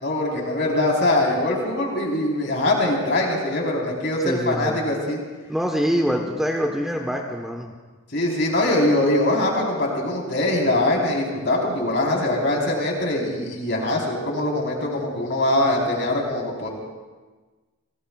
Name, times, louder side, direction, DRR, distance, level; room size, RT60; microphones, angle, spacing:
voice 1, 0.0-5.2 8.1-16.7, left 1 dB, 50° left, -2 dB, 4.0 m, -22 dB
voice 2, 4.2-4.8 5.5-7.7, equal, ahead, 1 dB, 1.0 m, -24 dB
30.0 x 19.5 x 2.4 m, 1.3 s
head